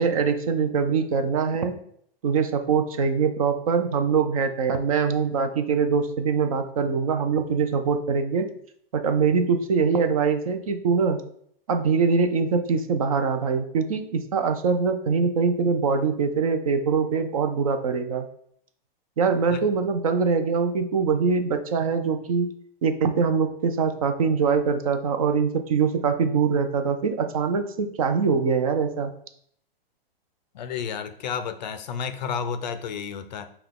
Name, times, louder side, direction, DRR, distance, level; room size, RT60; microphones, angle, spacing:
voice 1, 0.0-1.8 2.2-8.5 8.9-11.2 11.7-18.3 19.2-22.5 22.8-29.1, right 5 dB, 35° right, 7 dB, 0.4 m, -23 dB
voice 2, 30.5-33.5, left 6 dB, 50° left, 10 dB, 0.4 m, -31 dB
5.7 x 2.3 x 3.6 m, 0.66 s
hypercardioid pair, 155°, 30 cm